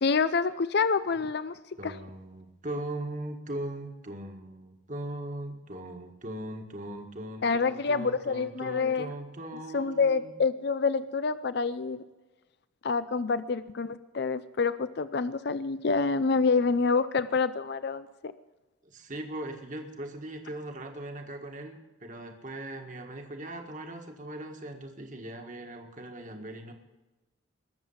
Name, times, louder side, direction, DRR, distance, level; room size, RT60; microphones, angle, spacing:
voice 1, 0.0-1.9 7.4-9.1 9.7-12.0 12.8-18.3, left 4 dB, 55° left, 14 dB, 0.5 m, -27 dB
voice 2, 1.8-10.3 18.8-26.7, right 1 dB, 40° right, 3 dB, 1.7 m, -39 dB
21.5 x 7.6 x 5.7 m, 1.1 s
head